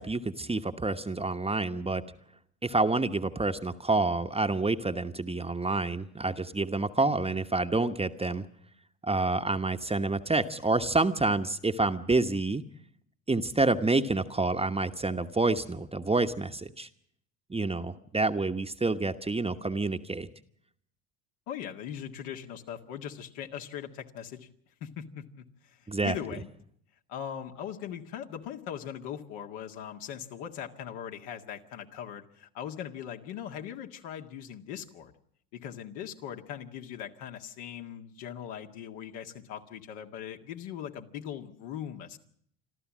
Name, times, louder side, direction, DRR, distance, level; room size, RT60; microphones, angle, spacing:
voice 1, 0.0-2.0 2.6-8.5 9.0-12.6 13.3-16.9 17.5-20.3 25.9-26.1, right 3 dB, 15° right, 7 dB, 1.1 m, -28 dB
voice 2, 21.5-24.5 24.8-26.5 27.1-35.1 35.5-42.2, left 9 dB, 70° left, 3 dB, 2.0 m, -40 dB
27.0 x 13.0 x 7.4 m, 0.68 s
hypercardioid pair, 70°, 44 cm